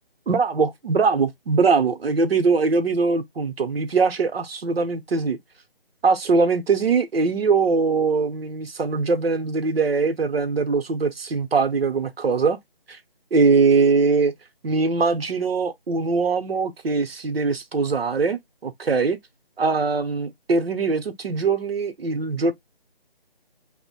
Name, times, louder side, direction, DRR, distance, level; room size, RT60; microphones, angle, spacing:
voice 1, 0.3-5.4 6.0-12.6 12.9-13.0 13.3-14.3 14.6-19.2 19.6-22.5, right 4 dB, 80° right, 0.8 m, -21 dB
2.7 x 2.1 x 4.0 m
figure-of-eight pair, 160°, 30 cm